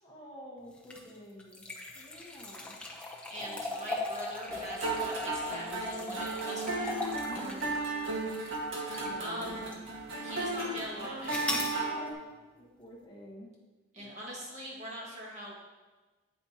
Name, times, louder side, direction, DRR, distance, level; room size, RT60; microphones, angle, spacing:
voice 1, 0.0-1.7 1.9-2.8 3.4-4.0 6.0-6.3 7.3-7.8 9.0-9.3 11.8-12.2 12.6-13.5 13.9-14.1, equal, 20° left, -5 dB, 1.3 m, -49 dB
sound 1, 0.8-9.2 9.7-9.8 11.3-11.8, left 2 dB, 5° left, 0.7 m, -39 dB
voice 2, 3.3-7.1 9.2-9.8 10.2-11.6 13.9-15.6, equal, 35° right, -4 dB, 1.8 m, -42 dB
sound 2, 4.5-12.1, right 2 dB, 70° right, 1.6 m, -35 dB
8.7 x 8.4 x 2.9 m, 1.3 s
head